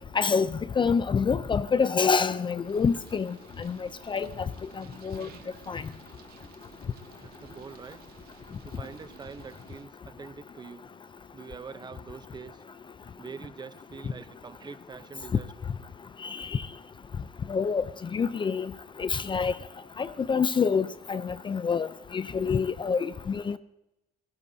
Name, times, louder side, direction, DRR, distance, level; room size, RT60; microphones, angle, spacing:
voice 1, 0.1-0.5 0.8-4.3 4.8-5.3 5.7-5.8 16.2-16.6 17.5-17.8 18.1-18.7 19.0-19.5 20.0-23.6, left 5 dB, 30° left, 0.5 m, -27 dB
sound 1, 2.6-9.8, right 9 dB, 65° right, 1.8 m, -53 dB
voice 2, 7.2-8.0 8.6-10.9 11.3-12.6 13.2-15.5, right 5 dB, 25° right, 0.8 m, -44 dB
30.0 x 16.5 x 2.8 m
cardioid pair, 110°, 17 cm